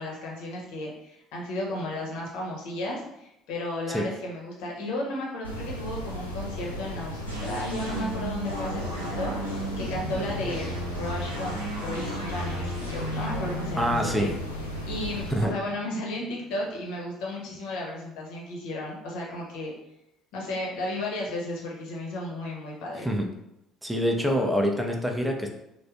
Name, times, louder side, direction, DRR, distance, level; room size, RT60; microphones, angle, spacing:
voice 1, 0.0-14.3 14.9-19.7 20.3-23.1, left 1 dB, 60° left, -2 dB, 0.8 m, -34 dB
sound 1, 5.4-15.4, equal, 85° left, 0.3 m, -36 dB
sound 2, 7.2-16.7, equal, 85° right, 0.5 m, -35 dB
voice 2, 13.8-14.3 15.3-15.5 23.0-23.3 23.8-25.5, equal, 5° right, 2 dB, 0.4 m, -25 dB
3.2 x 2.1 x 2.4 m, 0.84 s
figure-of-eight pair, 55°, 0 cm